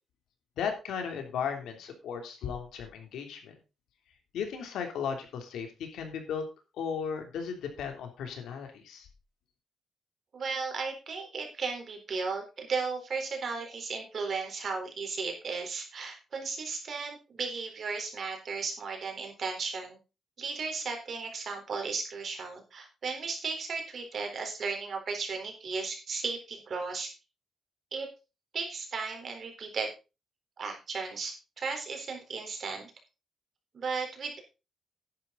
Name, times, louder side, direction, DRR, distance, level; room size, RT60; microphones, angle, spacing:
voice 1, 0.6-3.5 4.3-6.4 6.8-9.1, left 7 dB, 90° left, 4 dB, 3.1 m, -36 dB
voice 2, 10.3-20.0 20.4-27.1 27.9-28.1 28.5-29.9 30.6-32.9 33.7-34.4, right 4 dB, 50° right, 4 dB, 4.0 m, -35 dB
11.0 x 9.7 x 4.0 m, 0.30 s
cardioid pair, 120°, 0 cm